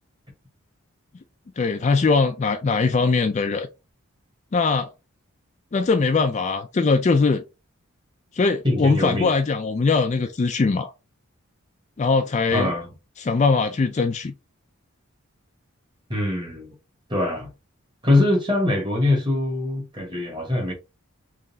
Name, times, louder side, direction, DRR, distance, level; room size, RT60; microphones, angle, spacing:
voice 1, 1.6-3.7 4.5-4.9 5.7-7.4 8.3-10.9 12.0-12.7 13.2-14.3, left 4 dB, 30° left, 0.3 m, -21 dB
voice 2, 8.6-9.3 12.5-12.9 16.1-16.7 17.1-17.5 18.0-20.7, left 2 dB, 20° right, 1.2 m, -23 dB
3.8 x 3.1 x 2.7 m
head